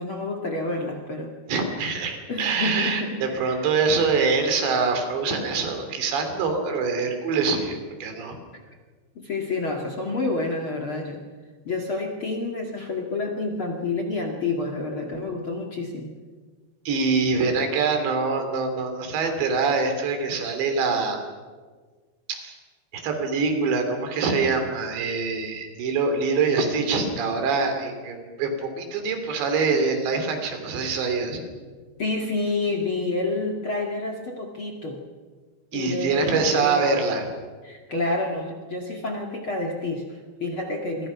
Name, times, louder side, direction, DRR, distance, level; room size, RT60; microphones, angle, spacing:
voice 1, 0.0-1.3 2.3-3.7 9.2-11.3 11.6-16.1 32.0-35.0 35.7-36.9 37.6-41.1, left 2 dB, 45° left, 3 dB, 1.8 m, -29 dB
voice 2, 1.5-8.4 16.9-21.2 22.3-22.6 22.9-31.4 35.7-37.3, right 4 dB, 75° right, 6 dB, 5.2 m, -24 dB
27.5 x 23.5 x 5.9 m, 1.5 s
omnidirectional pair, 5.2 m